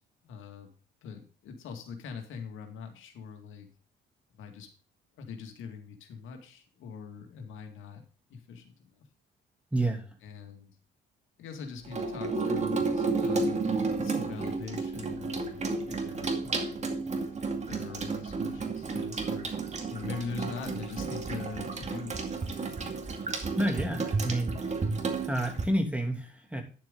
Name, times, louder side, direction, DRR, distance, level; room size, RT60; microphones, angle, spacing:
voice 1, 0.2-0.7 1.0-3.7 4.3-4.7 5.2-8.0 8.3-9.0 10.2-10.7 11.4-15.6 15.9-16.8 17.7-19.5 19.9-22.3, left 5 dB, 80° left, 4 dB, 2.2 m, -42 dB
voice 2, 9.7-10.1 23.6-24.6 25.2-26.6, right 1 dB, 5° right, 3 dB, 2.8 m, -29 dB
Water tap faucet / Sink (filling or washing), 11.8-25.6, right 3 dB, 35° right, 2.3 m, -32 dB
10.5 x 7.4 x 3.8 m, 0.37 s
cardioid pair, 90°, 20 cm